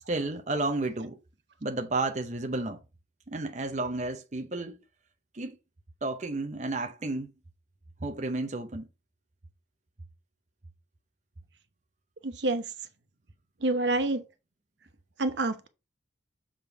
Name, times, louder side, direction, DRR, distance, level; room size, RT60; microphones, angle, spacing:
voice 1, 0.1-1.2 1.6-2.8 3.3-4.8 5.3-5.6 6.0-7.3 8.0-8.9, right 2 dB, 40° right, 0.7 m, -32 dB
voice 2, 12.2-12.7 13.6-14.2 15.2-15.7, right 2 dB, 80° right, 0.9 m, -27 dB
6.9 x 3.7 x 4.6 m
head